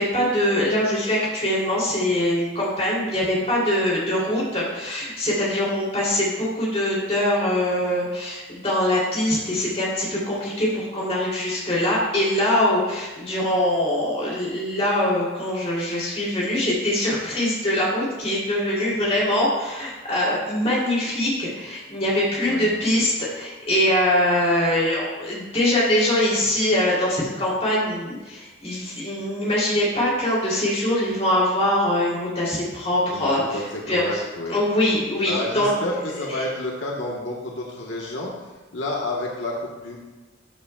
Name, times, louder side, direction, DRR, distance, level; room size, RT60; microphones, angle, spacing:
voice 1, 0.0-34.2 34.5-35.7, left 1 dB, 35° left, -6 dB, 2.9 m, -23 dB
voice 2, 33.1-38.3 38.7-40.0, left 1 dB, 80° left, -2 dB, 1.2 m, -30 dB
12.5 x 7.3 x 2.3 m, 1.2 s
head